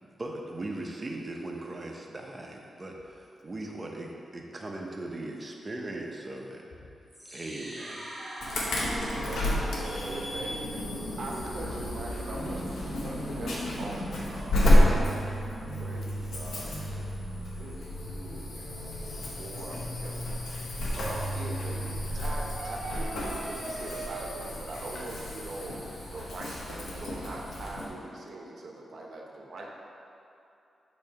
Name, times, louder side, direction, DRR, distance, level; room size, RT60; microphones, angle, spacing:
voice 1, 0.0-6.6 7.3-8.1, right 2 dB, 30° right, 0 dB, 0.7 m, -39 dB
sound 1, 7.1-23.1, right 1 dB, 5° right, 1.2 m, -40 dB
Insect / Alarm, 8.4-27.9, left 1 dB, 85° left, 1.0 m, -31 dB
voice 2, 8.7-10.6, left 2 dB, 65° left, 0 dB, 0.7 m, -51 dB
voice 3, 9.8-10.6 11.2-15.3 15.8-17.1 17.5-20.3 21.0-21.9 22.1-29.7, right 2 dB, 60° right, -1 dB, 0.9 m, -42 dB
sound 2, 22.4-28.1, right 3 dB, 80° right, 0.5 m, -44 dB
7.0 x 2.8 x 5.2 m, 2.7 s
cardioid pair, 85°, 0 cm